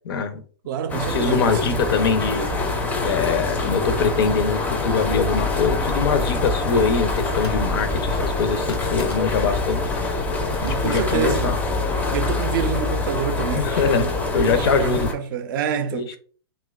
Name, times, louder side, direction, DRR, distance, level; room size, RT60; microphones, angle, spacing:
voice 1, 0.0-0.4 1.1-2.5 3.0-9.8 10.6-11.5 13.5-14.1 14.3-15.1 15.9-16.2, left 5 dB, 65° left, 0.5 m, -23 dB
voice 2, 0.7-1.8 10.6-11.6 12.1-14.1 14.4-16.2, right 8 dB, 55° right, 0.4 m, -27 dB
sound 1, 0.9-15.1, left 3 dB, 10° left, 0.4 m, -25 dB
sound 2, 6.1-11.7, left 2 dB, 90° left, 0.9 m, -45 dB
2.7 x 2.2 x 2.3 m
hypercardioid pair, 125°, 13 cm